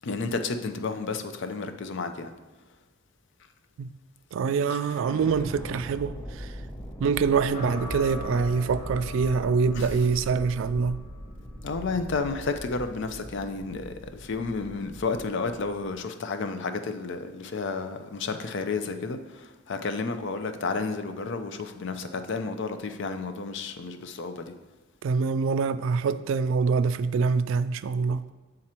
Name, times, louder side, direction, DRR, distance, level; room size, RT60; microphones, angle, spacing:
voice 1, 0.0-2.3 9.8-9.9 11.6-13.9 14.2-24.5, left 4 dB, 60° left, 0.5 m, -31 dB
voice 2, 4.3-6.6 7.0-11.0 25.0-28.2, right 5 dB, 65° right, 0.3 m, -25 dB
sound 1, 4.9-16.0, equal, 15° left, 0.7 m, -42 dB
sound 2, 7.5-15.8, left 1 dB, 40° left, 1.3 m, -41 dB
7.5 x 3.8 x 4.3 m
head